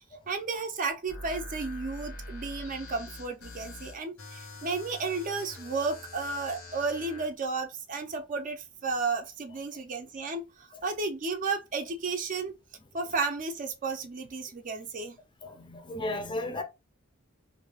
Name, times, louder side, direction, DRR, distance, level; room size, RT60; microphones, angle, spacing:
voice 1, 0.3-12.5 12.9-15.2, right 4 dB, 40° right, 0.4 m, -33 dB
sound 1, 1.1-7.3, left 2 dB, 80° left, 0.9 m, -44 dB
voice 2, 15.4-16.6, left 2 dB, 25° left, 0.5 m, -35 dB
2.6 x 2.2 x 3.3 m
head